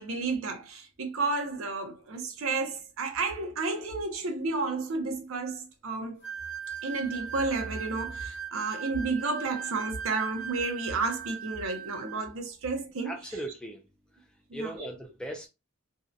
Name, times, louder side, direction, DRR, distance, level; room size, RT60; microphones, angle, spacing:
voice 1, 0.0-6.2 6.8-13.4 14.5-14.9, right 3 dB, 70° right, 0.6 m, -32 dB
sound 1, 6.2-12.3, right 7 dB, 50° left, 0.6 m, -39 dB
voice 2, 13.0-13.8 14.5-15.5, right 1 dB, 5° left, 0.3 m, -38 dB
2.6 x 2.1 x 2.5 m
head